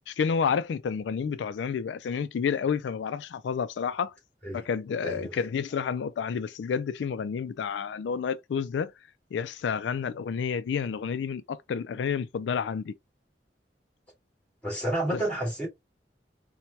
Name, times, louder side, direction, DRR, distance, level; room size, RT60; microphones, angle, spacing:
voice 1, 0.1-4.1 4.5-8.9 9.3-12.9 15.1-15.2, left 6 dB, 90° left, 0.3 m, -30 dB
voice 2, 5.0-5.4 14.6-15.7, right 1 dB, 5° left, 2.1 m, -30 dB
4.5 x 2.2 x 2.6 m
head